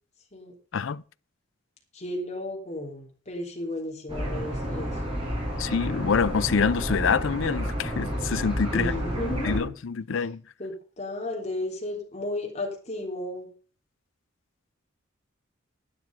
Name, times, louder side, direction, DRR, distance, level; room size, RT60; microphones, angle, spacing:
voice 1, 1.9-4.9 8.7-9.7 10.1-10.2 10.6-13.5, left 1 dB, 35° left, 3.6 m, -33 dB
sound 1, 4.1-9.6, equal, 25° right, 5.5 m, -30 dB
voice 2, 5.6-8.9 9.4-10.4, left 6 dB, 70° left, 0.5 m, -26 dB
12.0 x 9.5 x 5.3 m
head